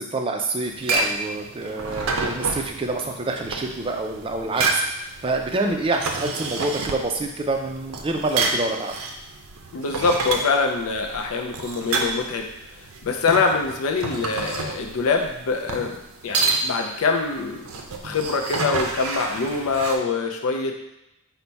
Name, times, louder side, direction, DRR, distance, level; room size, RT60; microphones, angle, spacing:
voice 1, 0.0-8.9, right 2 dB, 25° right, 3 dB, 0.3 m, -27 dB
sound 1, 0.6-20.0, right 3 dB, 85° right, 0.5 m, -29 dB
voice 2, 9.7-12.5 12.7-15.9 16.2-20.8, left 4 dB, 85° left, 3 dB, 0.4 m, -24 dB
4.0 x 2.1 x 4.5 m, 0.89 s
head